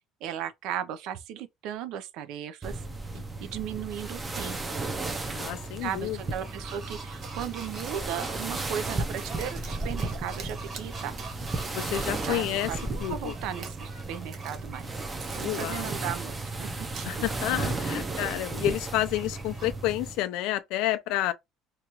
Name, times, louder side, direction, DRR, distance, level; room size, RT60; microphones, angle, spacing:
voice 1, 0.0-2.8 3.4-4.8 5.8-11.2 12.3-14.9 15.4-16.3 16.6-16.7 18.0-18.2 18.5-18.6, right 10 dB, 70° right, 0.5 m, -36 dB
sound 1, 2.6-20.2, right 2 dB, 20° right, 0.5 m, -34 dB
voice 2, 5.3-6.2 11.7-12.7 13.0-13.3 15.4-15.9 17.1-21.3, left 14 dB, 75° left, 0.4 m, -30 dB
sound 2, 5.4-19.8, right 3 dB, 35° right, 1.3 m, -47 dB
sound 3, 7.2-12.7 13.4-13.8 14.3-14.9 15.2-16.2 16.9-17.5, right 5 dB, 50° right, 0.8 m, -46 dB
2.9 x 2.3 x 2.9 m
cardioid pair, 140°, 0 cm